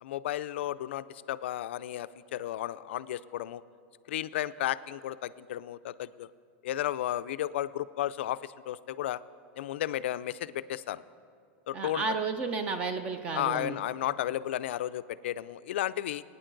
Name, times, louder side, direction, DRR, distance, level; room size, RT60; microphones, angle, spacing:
voice 1, 0.0-3.6 4.1-6.3 6.6-9.2 9.6-11.0 11.7-12.1 13.3-16.2, left 12 dB, 65° left, 14 dB, 0.4 m, -33 dB
voice 2, 11.7-13.8, right 4 dB, 20° right, 9 dB, 0.4 m, -32 dB
21.0 x 9.6 x 3.9 m, 2.2 s
supercardioid pair, 180°, 7 cm